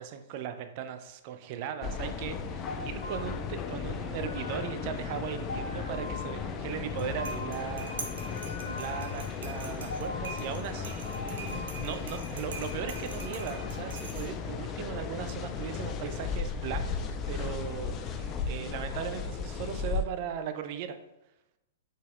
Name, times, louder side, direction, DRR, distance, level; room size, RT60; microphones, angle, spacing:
voice 1, 0.0-8.0 8.8-21.0, right 8 dB, 45° right, 8 dB, 0.5 m, -38 dB
sound 1, 1.8-20.0, left 6 dB, 30° left, 0.4 m, -36 dB
sound 2, 2.7-14.0, left 2 dB, 70° left, 1.1 m, -44 dB
Tea with spoon, 6.8-14.6, right 4 dB, 70° right, 1.0 m, -45 dB
5.1 x 4.1 x 2.5 m, 0.89 s
figure-of-eight pair, 110°, 0 cm